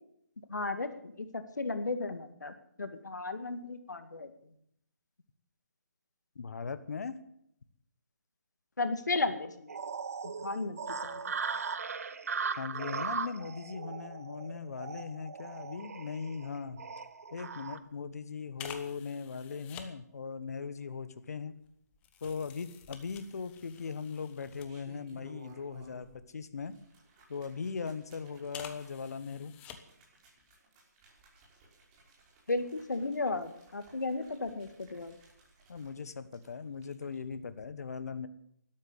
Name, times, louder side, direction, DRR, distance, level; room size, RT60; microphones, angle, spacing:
voice 1, 0.5-2.5 2.8-4.3 8.8-9.7 10.2-11.4 32.5-35.2, left 3 dB, 80° left, 9 dB, 2.1 m, -34 dB
voice 2, 6.3-7.2 12.6-16.9 17.3-21.5 22.2-26.7 27.3-29.6 35.7-38.3, left 5 dB, 60° left, 13 dB, 1.3 m, -39 dB
sound 1, 9.7-17.8, right 5 dB, 55° right, 1.2 m, -38 dB
sound 2, 17.0-17.1 17.4-17.6 18.6-19.9 20.7-25.2 25.6-26.9 27.5-27.9 28.4-30.1 30.4-30.6, left 8 dB, 15° left, 1.1 m, -50 dB
sound 3, 22.9-23.6 24.4-26.2 26.5-37.2 37.5-37.7, right 3 dB, 25° right, 5.6 m, -60 dB
13.0 x 12.0 x 8.1 m, 0.73 s
figure-of-eight pair, 155°, 9 cm